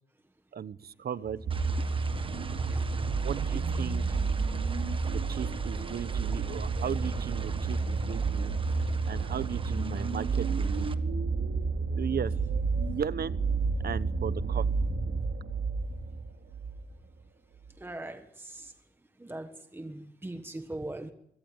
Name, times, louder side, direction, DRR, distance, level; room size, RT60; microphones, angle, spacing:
voice 1, 0.5-1.4 3.2-4.2 5.1-8.5 9.1-10.9 12.0-12.3 12.8-13.4 13.8-14.6, right 8 dB, 70° right, 1.0 m, -36 dB
sound 1, 1.3-16.8 17.7-17.8, right 4 dB, 90° right, 3.2 m, -30 dB
sound 2, 1.5-10.9, right 4 dB, 30° right, 1.6 m, -45 dB
voice 2, 17.8-18.7 19.2-21.1, right 1 dB, 15° right, 1.4 m, -40 dB
25.0 x 24.0 x 9.6 m
wide cardioid pair, 155°, 17 cm